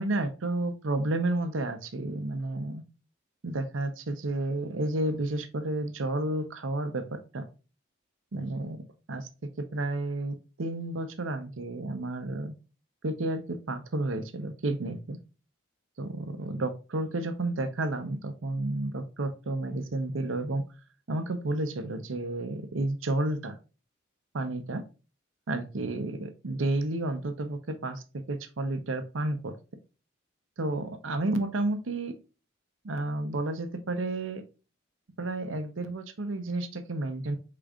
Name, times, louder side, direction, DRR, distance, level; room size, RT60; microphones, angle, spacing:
voice 1, 0.0-2.8 3.4-7.4 8.3-8.8 9.1-9.3 9.6-12.5 13.0-15.2 16.0-20.6 21.1-23.5 24.3-24.8 25.5-28.0 28.3-29.5 30.6-32.1 32.8-34.4 35.2-37.4, right 2 dB, 80° right, 8 dB, 0.7 m, -31 dB
5.0 x 3.8 x 2.3 m, 0.32 s
head